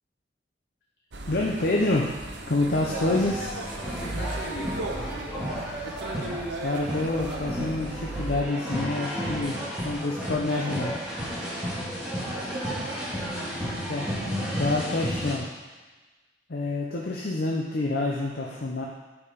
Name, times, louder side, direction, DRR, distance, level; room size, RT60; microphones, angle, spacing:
sound 1, 1.1-8.4, right 2 dB, 75° right, 0.9 m, -36 dB
voice 1, 1.3-2.2 2.5-3.5 6.6-11.0 13.9-14.1 14.5-15.5 16.5-18.8, left 2 dB, 60° left, -2 dB, 0.8 m, -27 dB
sound 2, 2.8-15.3, equal, 5° right, 2.2 m, -33 dB
voice 2, 3.9-5.8 11.5-12.3 13.4-13.9, left 1 dB, 80° left, -6 dB, 2.8 m, -42 dB
8.6 x 5.0 x 5.1 m, 1.3 s
head